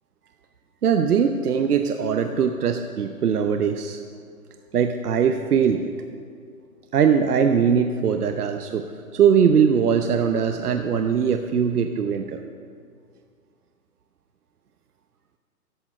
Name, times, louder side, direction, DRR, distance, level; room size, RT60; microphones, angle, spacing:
voice 1, 0.8-4.0 4.7-5.9 6.9-12.4, right 7 dB, 80° right, 7 dB, 0.9 m, -21 dB
14.5 x 11.5 x 4.3 m, 2.1 s
hypercardioid pair, 160°, 45 cm